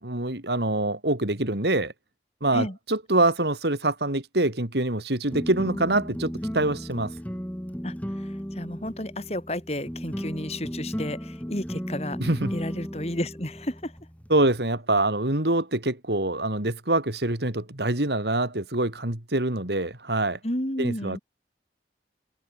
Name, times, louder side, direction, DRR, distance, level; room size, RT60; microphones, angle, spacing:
voice 1, 0.0-1.9 2.4-7.1 12.2-12.5 14.3-20.4 20.8-21.2, right 2 dB, 75° right, 3.1 m, -25 dB
sound 1, 5.3-14.6, equal, 10° left, 2.6 m, -35 dB
voice 2, 7.8-12.2 12.5-13.9 20.4-21.2, left 1 dB, 35° left, 4.9 m, -32 dB
head